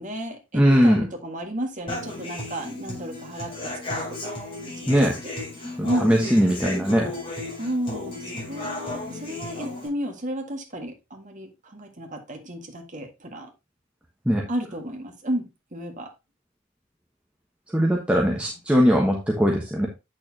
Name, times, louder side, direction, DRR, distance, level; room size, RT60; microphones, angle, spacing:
voice 1, 0.0-4.4 4.7-5.3 5.8-6.4 7.6-13.5 14.5-16.1 18.4-18.6, equal, 40° right, 1.8 m, -33 dB
voice 2, 0.5-1.0 4.9-5.2 5.8-7.1 14.3-14.5 17.7-19.9, equal, 5° right, 1.2 m, -20 dB
Human voice / Acoustic guitar, 1.9-9.9, left 2 dB, 25° left, 4.6 m, -34 dB
8.4 x 6.6 x 2.8 m
head